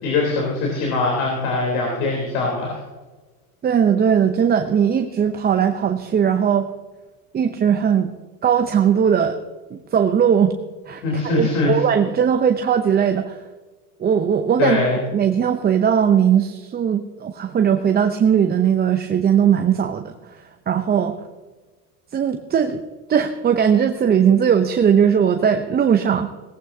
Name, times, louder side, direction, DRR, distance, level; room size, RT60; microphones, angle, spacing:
voice 1, 0.0-2.8 11.0-11.7 14.6-15.0, left 3 dB, 65° left, -1 dB, 3.8 m, -22 dB
voice 2, 3.6-6.7 7.3-8.1 8.4-9.4 9.7-10.5 10.9-11.0 11.3-13.4 14.0-14.8 15.1-20.1 20.7-21.2 22.1-22.8 23.1-26.3, right 8 dB, 20° right, 6 dB, 0.7 m, -18 dB
18.0 x 15.0 x 2.8 m, 1.3 s
hypercardioid pair, 100°, 44 cm